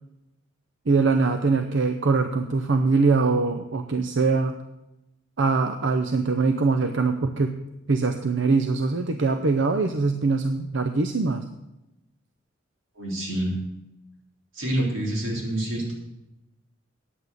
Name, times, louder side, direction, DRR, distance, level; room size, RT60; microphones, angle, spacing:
voice 1, 0.9-4.6 5.4-7.6 7.9-11.4, right 4 dB, 65° right, 7 dB, 0.6 m, -22 dB
voice 2, 13.0-13.5 14.5-15.9, right 1 dB, 90° right, -3 dB, 4.0 m, -27 dB
9.3 x 8.3 x 6.7 m, 0.95 s
head